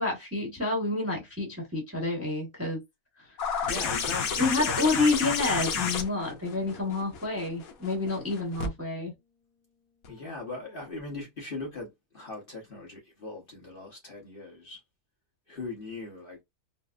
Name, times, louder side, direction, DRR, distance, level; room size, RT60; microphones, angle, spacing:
voice 1, 0.0-2.8 4.4-9.1, left 3 dB, 10° right, 0.9 m, -29 dB
sound 1, 3.4-8.7 10.0-10.1, left 6 dB, 70° left, 1.1 m, -31 dB
voice 2, 3.6-5.0 10.1-14.8 15.5-16.4, left 3 dB, 40° left, 1.2 m, -40 dB
4.2 x 2.0 x 2.4 m
omnidirectional pair, 1.6 m